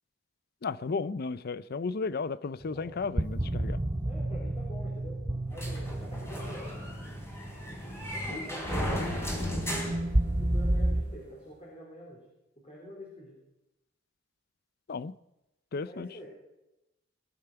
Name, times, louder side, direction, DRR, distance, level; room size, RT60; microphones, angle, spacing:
voice 1, 0.6-3.8 14.9-15.1 15.7-16.3, left 4 dB, 50° left, 0.5 m, -34 dB
voice 2, 2.6-3.0 4.0-5.2 5.5-6.7 8.1-9.6 10.4-12.2 12.6-13.4 15.8-16.3, equal, 30° left, 4.2 m, -47 dB
sound 1, 2.6-11.0, right 1 dB, 20° right, 0.9 m, -32 dB
sound 2, 5.6-10.8, equal, 15° left, 3.9 m, -35 dB
20.0 x 11.0 x 5.8 m
head